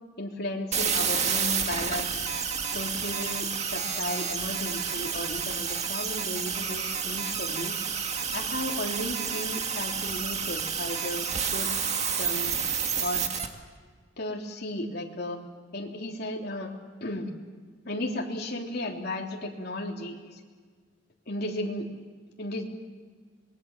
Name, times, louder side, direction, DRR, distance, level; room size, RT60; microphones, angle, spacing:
voice 1, 0.2-2.3 2.7-7.8 8.3-11.7 12.1-12.6 13.0-13.2 14.2-15.4 15.7-16.7 17.0-17.3 17.9-20.4 21.3-21.9 22.4-22.6, left 1 dB, 55° left, 0 dB, 3.4 m, -34 dB
sound 1, 0.7-13.5, right 6 dB, 35° right, 1.9 m, -30 dB
27.0 x 21.5 x 7.3 m, 1.5 s
head